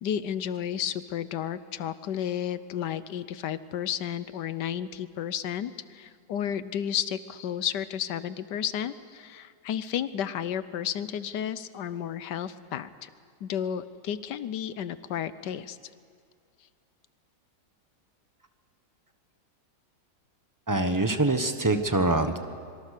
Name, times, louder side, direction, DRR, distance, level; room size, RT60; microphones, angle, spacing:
voice 1, 0.0-13.1 13.4-15.8, left 9 dB, 70° left, 14 dB, 1.3 m, -32 dB
voice 2, 20.7-22.4, right 2 dB, 15° right, 8 dB, 0.9 m, -24 dB
26.0 x 22.5 x 6.7 m, 2.2 s
omnidirectional pair, 2.0 m